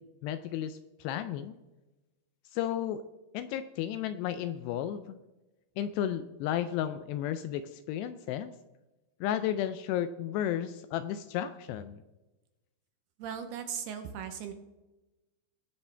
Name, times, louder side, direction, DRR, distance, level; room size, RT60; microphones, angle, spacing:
voice 1, 0.0-1.6 2.5-3.0 3.3-5.2 5.8-8.5 9.2-12.0, left 10 dB, 85° left, 11 dB, 2.5 m, -33 dB
voice 2, 13.2-14.5, right 8 dB, 75° right, 7 dB, 2.5 m, -38 dB
19.5 x 7.1 x 3.4 m, 1.1 s
omnidirectional pair, 5.2 m